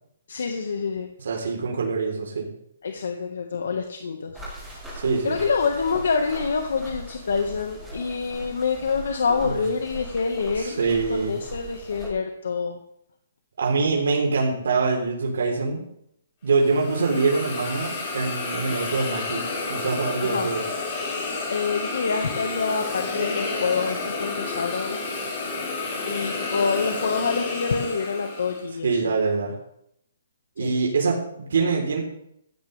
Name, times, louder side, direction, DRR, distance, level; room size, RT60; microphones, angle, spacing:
voice 1, 0.3-1.1 2.8-4.3 5.2-12.8 20.2-20.5 21.5-25.0 26.0-28.9 30.6-30.7, left 5 dB, 80° left, 4 dB, 1.6 m, -26 dB
voice 2, 1.2-2.5 4.9-5.4 9.4-9.6 10.6-11.4 13.6-15.8 16.4-19.4 19.7-20.7 28.8-29.6 30.6-32.0, right 4 dB, 75° right, -1 dB, 3.8 m, -24 dB
sound 1, 4.3-12.1, right 1 dB, ahead, 7.5 m, -40 dB
Hiss, 16.5-28.7, left 3 dB, 35° left, 5.2 m, -30 dB
16.0 x 16.0 x 3.5 m, 0.74 s
hypercardioid pair, 165°, 0 cm